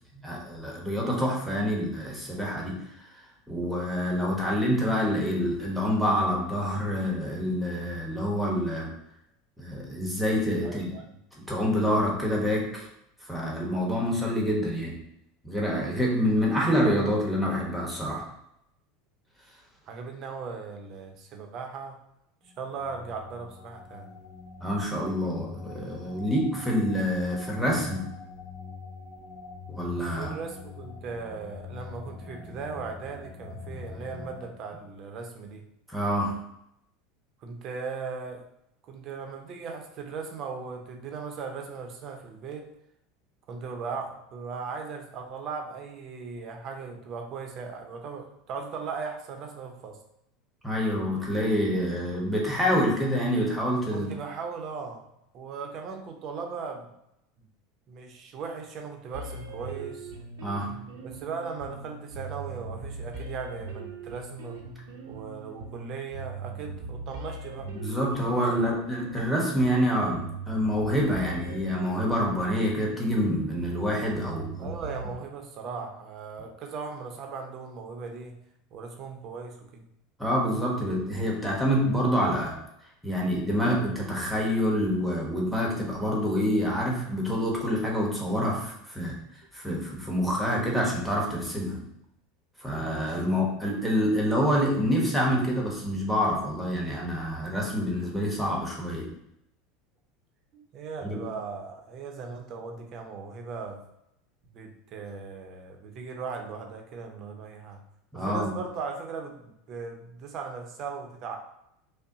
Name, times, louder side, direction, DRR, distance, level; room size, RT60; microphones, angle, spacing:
voice 1, 0.2-2.8 3.1-8.9 9.6-10.9 11.4-12.9 13.3-15.0 15.4-18.3 24.6-28.1 29.7-30.3 35.9-36.4 50.6-54.1 60.4-60.8 67.7-74.7 80.2-82.6 83.0-89.2 89.5-91.9 92.6-99.2 101.0-101.3 108.1-108.5, equal, 5° right, -3 dB, 1.0 m, -27 dB
voice 2, 10.6-11.0 19.9-22.0 22.6-24.1 30.1-35.6 37.4-38.4 38.9-42.7 43.5-50.0 52.5-52.6 53.9-55.0 55.3-56.9 57.9-60.1 61.0-64.6 65.1-67.7 68.2-68.4 68.7-68.8 74.6-78.4 78.7-79.9 93.0-93.2 100.5-103.8 104.5-107.8 108.1-111.4, right 5 dB, 45° right, 3 dB, 0.7 m, -38 dB
sound 1, 22.5-34.5, left 5 dB, 40° left, 0.6 m, -44 dB
sound 2, 59.1-75.1, right 3 dB, 90° right, 0.8 m, -40 dB
5.4 x 2.1 x 2.7 m, 0.78 s
supercardioid pair, 125°, 0 cm